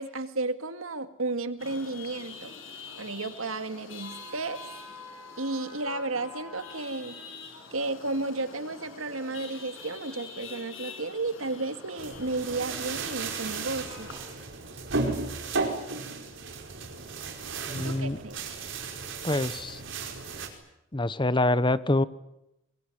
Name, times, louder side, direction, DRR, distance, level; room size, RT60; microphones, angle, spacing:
voice 1, 0.0-2.5 3.0-4.6 5.4-7.2 7.7-14.2 17.8-18.4, right 2 dB, 85° right, 10 dB, 2.1 m, -33 dB
Chatter / Vehicle horn car horn honking / Traffic noise roadway noise, 1.6-14.2, left 4 dB, 70° left, 6.5 m, -45 dB
sound 1, 12.0-20.5, right 4 dB, 65° right, 5.0 m, -34 dB
voice 2, 17.7-18.2 19.2-19.8 20.9-22.0, left 2 dB, 25° left, 16 dB, 0.9 m, -25 dB
25.0 x 22.0 x 9.8 m, 0.88 s
head